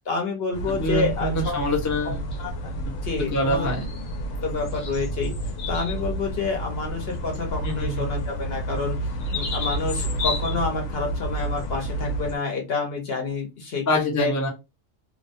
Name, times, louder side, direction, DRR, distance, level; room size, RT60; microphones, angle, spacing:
voice 1, 0.1-1.6 2.1-2.2 2.4-2.5 3.1-3.7 4.4-5.3 5.7-9.0 9.3-9.9 10.2-13.4 13.7-13.8 14.2-14.3, left 4 dB, 50° left, 2 dB, 0.9 m, -28 dB
sound 1, 0.5-12.4, equal, 75° left, 1.1 m, -30 dB
voice 2, 0.7-2.4 2.9-3.0 3.3-3.9 7.6-8.1 13.9-14.5, left 1 dB, 20° left, -1 dB, 0.4 m, -25 dB
2.8 x 2.1 x 2.5 m, 0.24 s
omnidirectional pair, 1.4 m